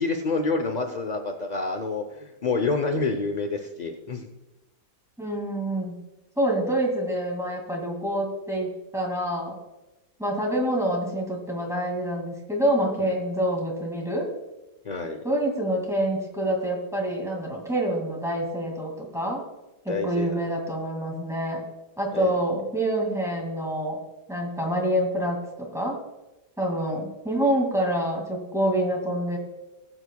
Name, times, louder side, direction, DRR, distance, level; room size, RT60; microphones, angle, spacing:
voice 1, 0.0-4.3 13.0-13.1 14.8-15.2 19.9-20.4 22.1-22.3, left 3 dB, 60° left, 4 dB, 0.4 m, -28 dB
voice 2, 5.2-6.0 6.4-9.6 10.2-14.3 15.2-19.4 19.8-21.6 22.0-24.0 24.3-25.4 25.7-26.0 26.6-29.4, right 1 dB, ahead, -1 dB, 2.0 m, -26 dB
20.0 x 7.8 x 2.3 m, 1.0 s
omnidirectional pair, 1.8 m